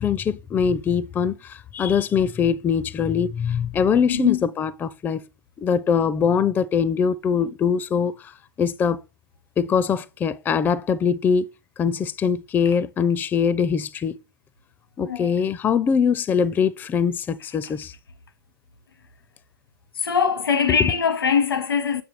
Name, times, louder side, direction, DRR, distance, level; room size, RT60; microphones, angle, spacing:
voice 1, 0.0-5.3 5.6-9.0 9.6-11.5 11.8-14.2 15.0-17.9 20.7-20.8, left 6 dB, 15° left, 0.4 m, -22 dB
voice 2, 4.1-4.4 15.1-15.3 20.0-22.0, left 6 dB, 85° left, 1.1 m, -22 dB
7.8 x 6.5 x 3.2 m
hypercardioid pair, 115°, 12 cm